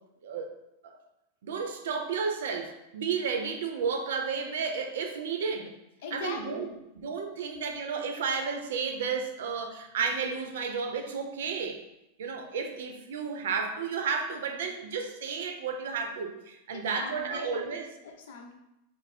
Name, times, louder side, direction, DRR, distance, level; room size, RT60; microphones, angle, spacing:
voice 1, 1.4-5.7 6.1-6.7 7.0-11.8 12.2-17.9, right 5 dB, 80° right, 4 dB, 0.7 m, -32 dB
voice 2, 6.0-6.8 16.7-17.8 18.0-18.5, left 5 dB, 65° left, 2 dB, 0.8 m, -41 dB
5.7 x 2.1 x 4.2 m, 0.89 s
supercardioid pair, 175°, 0 cm